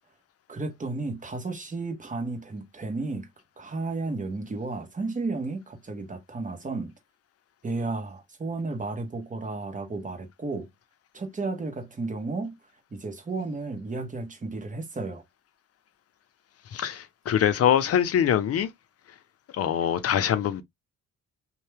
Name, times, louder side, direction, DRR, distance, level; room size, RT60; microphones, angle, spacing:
voice 1, 0.5-3.3 3.6-6.9 7.6-10.7 11.1-12.5 12.9-15.2, right 3 dB, 25° right, 1.1 m, -33 dB
voice 2, 16.7-18.7 19.6-20.6, left 9 dB, 50° left, 0.6 m, -23 dB
2.7 x 2.2 x 3.3 m
cardioid pair, 90°, 30 cm